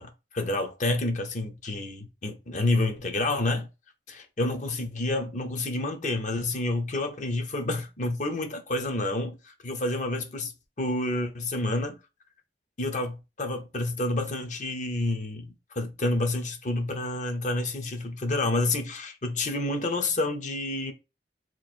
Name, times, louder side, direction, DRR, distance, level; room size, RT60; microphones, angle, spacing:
voice 1, 0.0-3.7 4.1-12.0 12.8-20.9, left 2 dB, 45° left, 0.7 m, -29 dB
3.0 x 2.5 x 4.2 m
head